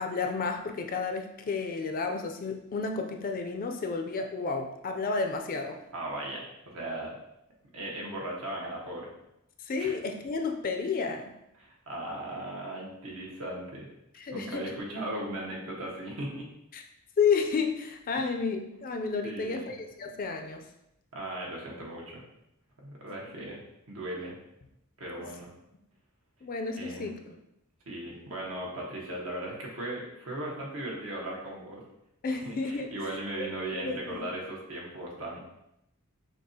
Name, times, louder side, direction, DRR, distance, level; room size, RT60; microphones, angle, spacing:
voice 1, 0.0-5.8 9.7-11.3 14.1-14.7 16.7-16.8 17.2-20.7 23.3-23.4 26.4-27.4 32.2-32.9 33.7-34.3, left 5 dB, 40° left, 4 dB, 0.4 m, -31 dB
voice 2, 5.9-7.2 7.7-9.1 9.8-9.9 11.6-13.9 14.3-16.5 18.1-18.3 19.2-19.7 21.1-22.2 22.8-23.6 23.9-24.4 25.0-25.5 26.8-27.1 27.9-31.8 32.3-35.4, right 1 dB, 75° right, -3 dB, 1.2 m, -37 dB
5.9 x 2.4 x 2.7 m, 0.84 s
head